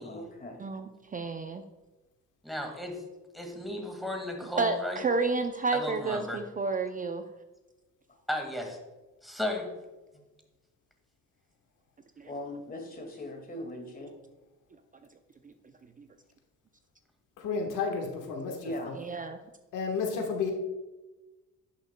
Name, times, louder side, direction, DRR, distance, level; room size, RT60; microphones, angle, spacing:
voice 1, 0.0-0.7 8.1-8.2 10.1-10.2 12.2-14.1 18.6-18.9, left 1 dB, 30° left, 3 dB, 2.0 m, -40 dB
voice 2, 0.6-1.6 4.6-7.2 12.2-12.3 15.4-15.5 16.0-16.1 19.0-19.4, right 3 dB, 30° right, 7 dB, 0.5 m, -31 dB
voice 3, 2.4-2.9 3.3-5.0 5.7-6.4 8.3-8.8 9.2-9.7, left 1 dB, ahead, 2 dB, 1.8 m, -34 dB
voice 4, 17.4-18.6 18.8-19.0 19.7-20.5, left 5 dB, 85° left, 2 dB, 1.3 m, -31 dB
11.0 x 6.3 x 2.2 m, 1.1 s
cardioid pair, 90°, 30 cm